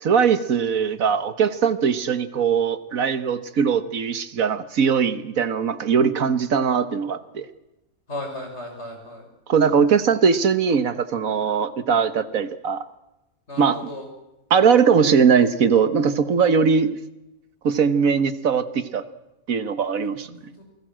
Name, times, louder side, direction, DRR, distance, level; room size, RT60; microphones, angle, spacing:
voice 1, 0.0-7.5 9.5-12.8 13.6-13.9 14.5-17.0 17.6-19.0 19.5-20.3, right 6 dB, 75° right, 12 dB, 1.7 m, -20 dB
voice 2, 8.1-9.3 13.5-14.1 20.0-20.6, left 1 dB, 50° left, 2 dB, 6.6 m, -36 dB
28.0 x 19.0 x 7.6 m, 0.93 s
omnidirectional pair, 1.5 m